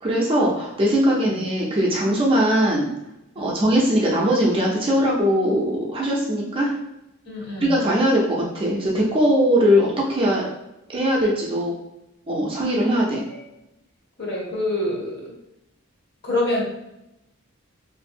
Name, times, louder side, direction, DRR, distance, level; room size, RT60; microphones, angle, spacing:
voice 1, 0.0-2.9 3.4-6.7 7.6-10.5 10.9-11.7 12.3-13.2, equal, 25° right, -4 dB, 0.4 m, -20 dB
voice 2, 3.4-3.7 7.3-7.8 13.3-13.4 14.2-15.3 16.2-16.6, left 1 dB, 50° left, -4 dB, 0.8 m, -27 dB
2.5 x 2.0 x 2.5 m, 0.88 s
head